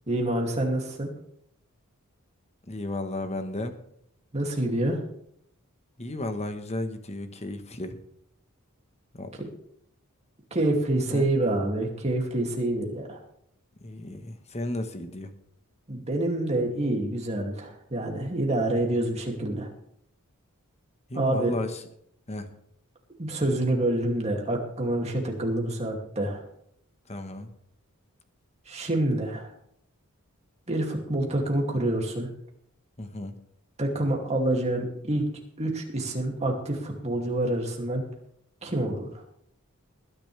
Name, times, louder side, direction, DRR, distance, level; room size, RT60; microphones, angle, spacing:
voice 1, 0.1-1.1 4.3-5.0 10.5-13.2 15.9-19.7 21.1-21.5 23.2-26.4 28.7-29.5 30.7-32.3 33.8-35.2 35.6-38.0 38.6-39.2, right 1 dB, 30° right, 1 dB, 2.6 m, -27 dB
voice 2, 2.7-3.7 6.0-8.0 9.1-9.3 11.1-11.3 13.8-15.3 21.1-21.8 22.3-22.5 27.1-27.5 33.0-33.3, left 1 dB, 30° left, 8 dB, 1.2 m, -34 dB
20.5 x 10.0 x 3.4 m, 0.72 s
head